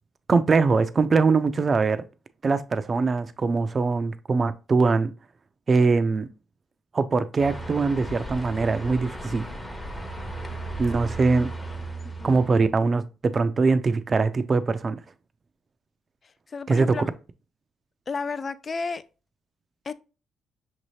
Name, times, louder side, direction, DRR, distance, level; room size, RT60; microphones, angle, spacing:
voice 1, 0.3-2.0 2.4-5.1 5.7-6.3 6.9-9.5 10.8-11.5 12.2-15.0 16.7-17.0, right 4 dB, 35° right, 0.4 m, -22 dB
sound 1, 7.4-12.7, right 2 dB, 15° left, 0.8 m, -35 dB
voice 2, 16.2-17.1 18.1-19.0 19.8-19.9, left 4 dB, 35° left, 0.3 m, -32 dB
5.8 x 2.7 x 3.1 m
cardioid pair, 90°, 0 cm